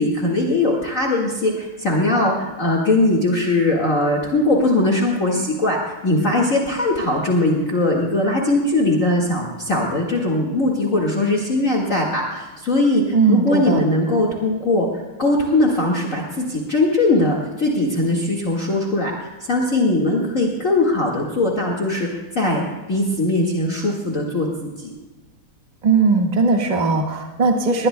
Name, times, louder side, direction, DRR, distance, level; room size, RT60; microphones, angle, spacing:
voice 1, 0.0-19.1 19.5-22.1 22.3-22.6 22.9-24.9, left 2 dB, 40° left, -2 dB, 2.1 m, -20 dB
voice 2, 13.1-13.8 25.8-27.9, right 4 dB, 20° right, 0 dB, 1.4 m, -18 dB
20.5 x 20.0 x 2.2 m, 1.2 s
omnidirectional pair, 2.4 m